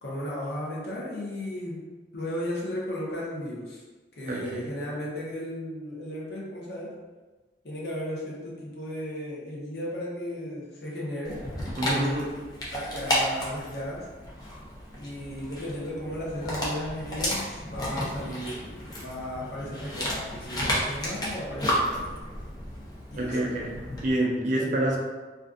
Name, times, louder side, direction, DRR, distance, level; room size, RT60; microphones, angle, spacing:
voice 1, 0.0-1.8 2.1-3.8 4.2-7.0 7.6-11.4 11.8-12.3 12.7-14.1 15.0-22.1 23.1-23.5 24.5-24.7, left 1 dB, 65° left, -5 dB, 0.7 m, -35 dB
voice 2, 4.3-4.7 11.8-12.3 23.1-25.0, right 1 dB, 45° right, -1 dB, 0.4 m, -27 dB
Dog, 11.2-24.1, equal, 20° left, 0.5 m, -32 dB
2.5 x 2.4 x 2.4 m, 1.3 s
head